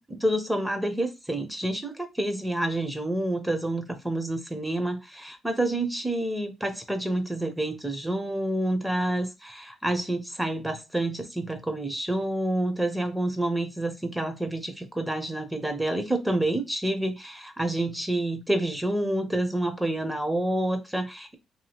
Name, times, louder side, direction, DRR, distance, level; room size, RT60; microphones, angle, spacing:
voice 1, 0.1-21.3, right 1 dB, 10° right, 0.6 m, -28 dB
2.8 x 2.5 x 2.8 m
cardioid pair, 90°, 0 cm